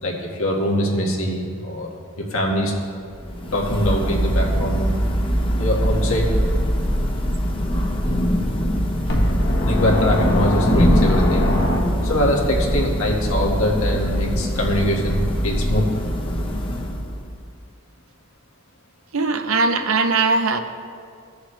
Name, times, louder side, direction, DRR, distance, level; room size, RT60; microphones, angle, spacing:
voice 1, 0.0-1.9 2.2-2.7 3.5-5.0 5.6-6.3 9.6-11.6 12.0-15.9, equal, 85° left, 1.8 m, -23 dB
Thunder / Rain, 3.1-17.4, equal, 25° left, 0.9 m, -22 dB
sound 1, 9.1-12.3, left 1 dB, 55° left, 1.3 m, -24 dB
voice 2, 19.1-20.6, right 3 dB, 90° right, 0.7 m, -20 dB
17.5 x 7.0 x 3.3 m
head